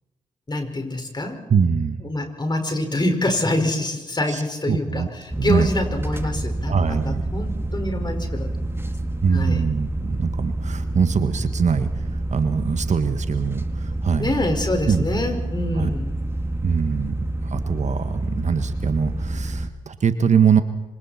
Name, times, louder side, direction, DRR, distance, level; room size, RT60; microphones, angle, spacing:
voice 1, 0.5-1.4 2.0-9.0 9.3-9.6 14.2-16.1, left 1 dB, 30° left, 5 dB, 5.4 m, -26 dB
voice 2, 1.5-2.0 4.3-4.4 4.7-5.1 5.4-5.7 6.7-7.2 9.2-14.3 14.9-15.0 15.7-15.9 16.6-17.1 17.4-20.6, right 6 dB, 50° right, 10 dB, 1.5 m, -22 dB
sound 1, 5.3-19.7, right 1 dB, 15° right, 2.2 m, -28 dB
26.0 x 25.5 x 4.4 m, 1.1 s
hypercardioid pair, 40°, 15 cm